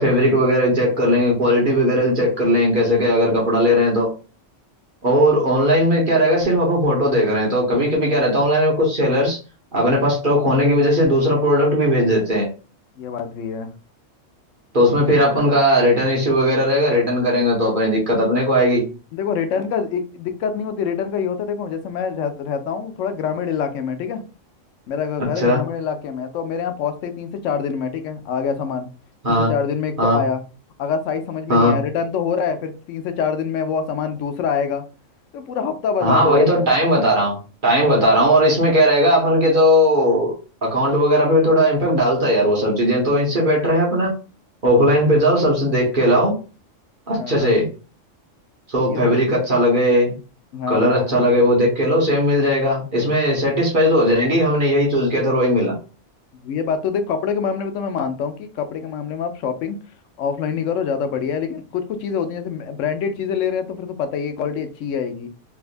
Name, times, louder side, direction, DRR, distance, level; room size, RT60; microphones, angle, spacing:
voice 1, 0.0-4.1 5.0-9.4 9.7-12.5 14.7-18.8 25.4-25.6 29.2-29.5 30.0-30.2 31.5-31.7 36.0-37.4 37.6-40.3 40.6-44.1 44.6-46.3 47.1-47.7 48.7-50.1 50.7-55.7, equal, 45° right, 1.1 m, -17 dB
voice 2, 13.0-13.7 19.1-24.2 24.9-28.9 29.3-30.4 30.8-34.8 35.3-36.7 47.2-47.6 48.9-49.2 50.5-51.3 56.4-59.8 60.2-65.3, left 6 dB, 75° left, 1.0 m, -25 dB
3.4 x 2.8 x 2.5 m
omnidirectional pair, 1.3 m